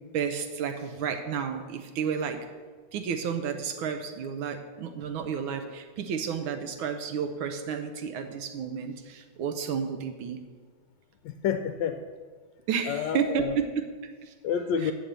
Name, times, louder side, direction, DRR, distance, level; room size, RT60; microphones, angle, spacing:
voice 1, 0.1-2.4 2.9-10.4 12.7-14.3 14.8-14.9, right 7 dB, 85° right, 6 dB, 1.5 m, -31 dB
voice 2, 11.2-12.0 12.8-13.5 14.4-14.9, left 8 dB, 75° left, 7 dB, 1.2 m, -29 dB
7.5 x 7.0 x 8.0 m, 1.5 s
omnidirectional pair, 2.2 m